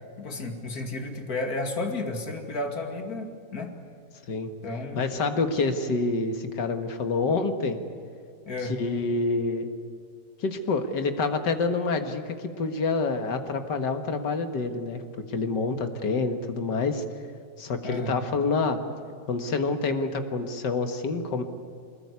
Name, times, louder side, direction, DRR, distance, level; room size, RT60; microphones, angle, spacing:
voice 1, 0.2-3.7 4.6-5.0 8.5-8.8 17.8-18.2, left 2 dB, 55° left, 3 dB, 2.9 m, -32 dB
voice 2, 5.0-7.8 8.6-9.7 10.4-15.0 15.3-17.0 17.6-18.8 19.3-21.4, left 3 dB, 70° left, 7 dB, 2.2 m, -27 dB
25.0 x 21.0 x 9.7 m, 2.2 s
omnidirectional pair, 2.0 m